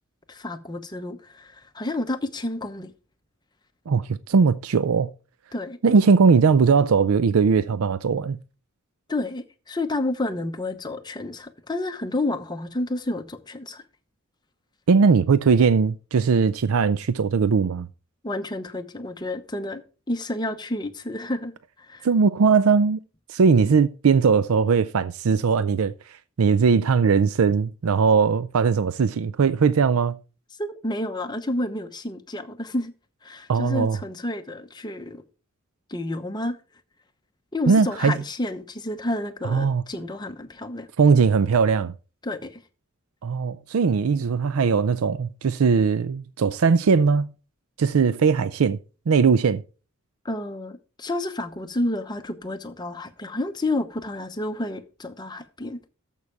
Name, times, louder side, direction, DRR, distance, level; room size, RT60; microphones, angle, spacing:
voice 1, 0.3-2.9 5.5-6.0 9.1-13.8 18.2-19.8 20.1-22.1 30.6-32.9 33.2-35.2 35.9-36.6 37.5-40.9 42.2-42.6 50.2-55.8, left 1 dB, 20° left, 0.9 m, -30 dB
voice 2, 3.9-5.1 5.8-8.4 14.9-17.9 22.0-23.0 23.3-25.9 26.4-30.2 33.5-34.0 37.7-38.2 39.5-39.8 41.0-41.9 43.2-47.3 47.8-48.8 49.1-49.6, right 5 dB, 85° right, 0.5 m, -19 dB
13.5 x 5.5 x 4.7 m
head